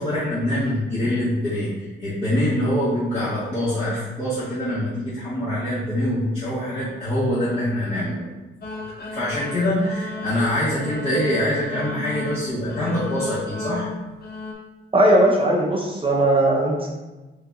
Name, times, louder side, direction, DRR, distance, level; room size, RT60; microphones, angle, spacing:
voice 1, 0.0-8.3 9.1-13.9, left 1 dB, 25° left, -11 dB, 1.2 m, -24 dB
sound 1, 8.6-14.5, left 3 dB, 50° left, 0.8 m, -34 dB
voice 2, 14.9-16.9, right 1 dB, 25° right, -2 dB, 0.7 m, -18 dB
3.8 x 2.7 x 3.5 m, 1.1 s
cardioid pair, 90°, 20 cm